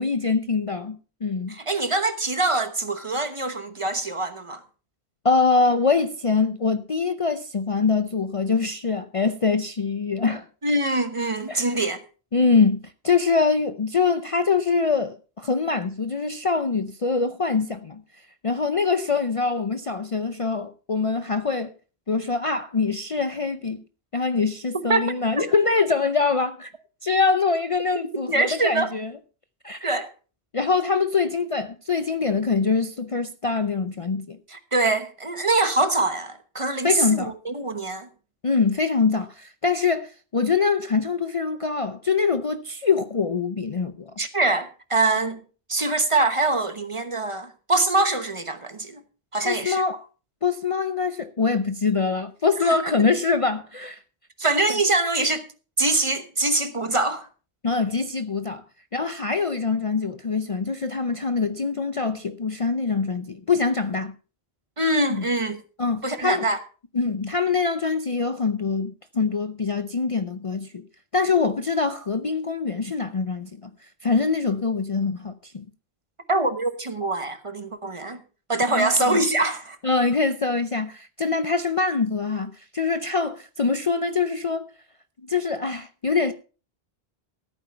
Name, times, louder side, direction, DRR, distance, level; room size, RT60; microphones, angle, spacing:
voice 1, 0.0-1.6 5.2-10.5 11.5-11.7 12.3-18.0 18.4-21.7 22.1-23.8 24.1-26.7 27.0-29.1 29.6-29.9 30.5-34.4 36.8-37.3 38.4-44.1 49.4-50.0 50.4-54.0 54.7-54.8 57.6-58.6 58.9-64.1 65.1-65.2 65.8-66.5 66.9-70.9 71.1-73.7 74.0-75.7 78.7-79.2 79.8-84.6 85.3-86.3, left 4 dB, 40° left, 0.6 m, -24 dB
voice 2, 1.5-4.6 10.6-12.0 24.9-25.5 28.3-28.9 29.8-30.1 34.5-38.1 44.2-45.4 45.7-49.0 49.3-49.8 52.6-53.0 54.4-55.4 55.8-57.3 64.8-65.6 66.0-66.6 76.3-78.2 78.5-79.8, right 2 dB, 30° right, 1.1 m, -24 dB
14.5 x 8.9 x 4.4 m
omnidirectional pair, 1.0 m